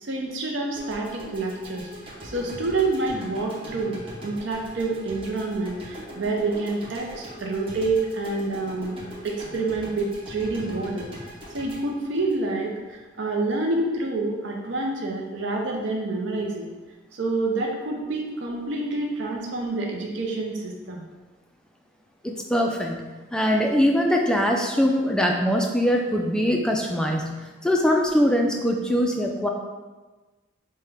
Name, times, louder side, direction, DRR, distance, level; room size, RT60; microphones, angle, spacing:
voice 1, 0.0-1.9 2.2-9.0 9.2-16.7 17.1-21.1, right 2 dB, 65° right, 0 dB, 0.5 m, -28 dB
sound 1, 0.8-13.0, equal, 25° right, 0.8 m, -41 dB
voice 2, 22.2-29.5, equal, 5° left, 1 dB, 0.3 m, -22 dB
5.5 x 2.2 x 3.4 m, 1.2 s
head